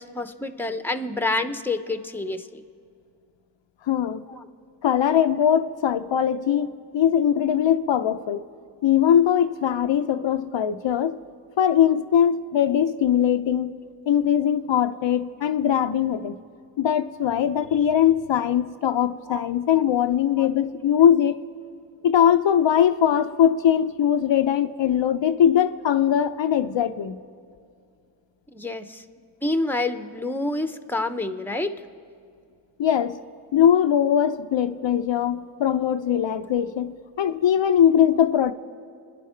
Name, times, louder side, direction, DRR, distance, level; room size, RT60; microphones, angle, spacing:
voice 1, 0.0-2.6 4.3-4.5 19.3-19.5 20.4-20.5 28.5-29.0 29.4-31.8, left 2 dB, 5° left, 0.9 m, -28 dB
voice 2, 3.9-4.2 4.8-8.4 8.8-11.2 11.6-13.7 14.1-16.4 16.8-21.4 22.0-27.2 32.8-33.2 33.5-38.5, left 9 dB, 70° left, 0.7 m, -21 dB
29.5 x 10.0 x 4.5 m
cardioid pair, 55°, 46 cm